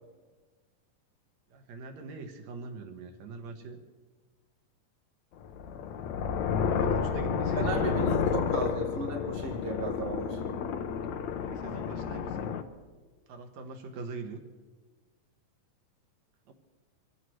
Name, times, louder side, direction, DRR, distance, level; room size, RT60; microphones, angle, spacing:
voice 1, 1.5-3.8 6.5-8.3 11.4-12.6 13.3-14.4 16.5-16.6, right 4 dB, 60° right, 5 dB, 2.4 m, -42 dB
sound 1, 5.4-12.6, left 6 dB, 70° left, 1.8 m, -31 dB
voice 2, 7.5-10.4, right 3 dB, 80° right, 2 dB, 0.5 m, -35 dB
26.0 x 15.5 x 3.2 m, 1.4 s
omnidirectional pair, 4.0 m